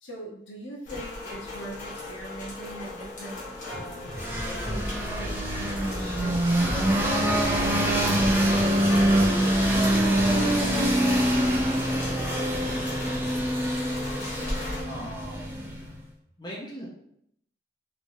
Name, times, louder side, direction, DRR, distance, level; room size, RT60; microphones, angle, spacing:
voice 1, 0.0-7.5, right 1 dB, 85° left, -3 dB, 1.1 m, -41 dB
Rain, 0.8-14.8, left 2 dB, 45° left, 1.0 m, -38 dB
sound 1, 4.2-15.9, right 1 dB, 10° right, 0.4 m, -24 dB
voice 2, 14.9-15.9 16.4-16.9, equal, 25° left, -4 dB, 0.7 m, -39 dB
3.2 x 3.0 x 2.7 m, 0.71 s
head